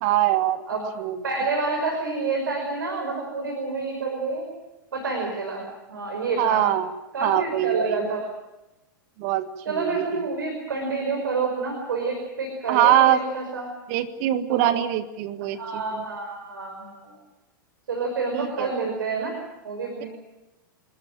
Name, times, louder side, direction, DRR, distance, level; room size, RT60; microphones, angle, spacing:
voice 1, 0.0-0.6 1.0-1.2 6.4-6.9 7.2-8.0 9.2-10.3 12.7-13.2 13.9-16.0 18.3-18.7, right 12 dB, 45° right, 12 dB, 1.7 m, -23 dB
voice 2, 1.2-4.4 4.9-6.7 7.1-8.2 9.6-13.7 14.5-14.8 15.4-17.1 17.9-19.4 19.6-20.1, right 3 dB, 70° right, 2 dB, 5.8 m, -28 dB
29.0 x 14.0 x 9.0 m, 1.0 s
figure-of-eight pair, 105°, 11 cm